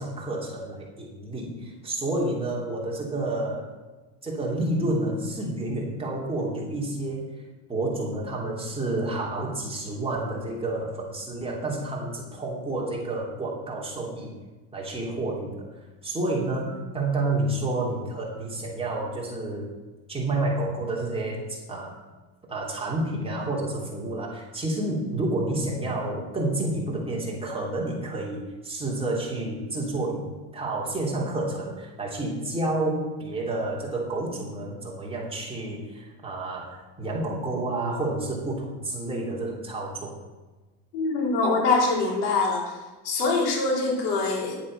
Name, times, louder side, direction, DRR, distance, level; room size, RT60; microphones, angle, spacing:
voice 1, 0.0-3.7 4.2-7.4 7.7-14.3 14.7-15.7 16.0-19.7 20.1-22.0 22.5-40.2, right 2 dB, 10° right, -3 dB, 3.1 m, -29 dB
voice 2, 40.9-42.8 43.0-44.6, left 3 dB, 90° left, -1 dB, 3.9 m, -24 dB
11.0 x 8.5 x 6.6 m, 1.2 s
supercardioid pair, 135°, 46 cm